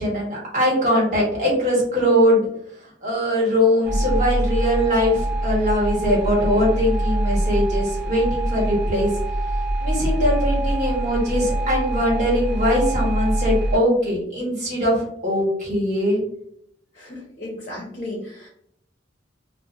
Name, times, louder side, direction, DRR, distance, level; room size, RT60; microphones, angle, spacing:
voice 1, 0.0-2.5 3.0-9.1 9.8-16.2, equal, 40° right, -5 dB, 1.3 m, -21 dB
sound 1, 3.8-13.8, right 1 dB, 60° right, 0.4 m, -24 dB
voice 2, 16.9-18.5, left 1 dB, 40° left, -3 dB, 0.7 m, -34 dB
2.6 x 2.1 x 2.4 m, 0.69 s
head